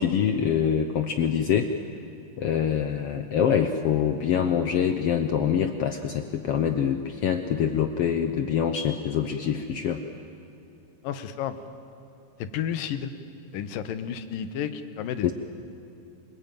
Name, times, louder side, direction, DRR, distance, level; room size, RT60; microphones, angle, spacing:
voice 1, 0.0-1.7 2.4-10.0 15.2-15.3, left 8 dB, 70° left, 7 dB, 1.4 m, -25 dB
voice 2, 11.0-11.6 12.4-13.1 13.5-15.3, left 9 dB, 90° left, 10 dB, 2.8 m, -31 dB
27.5 x 20.5 x 9.2 m, 2.9 s
omnidirectional pair, 3.8 m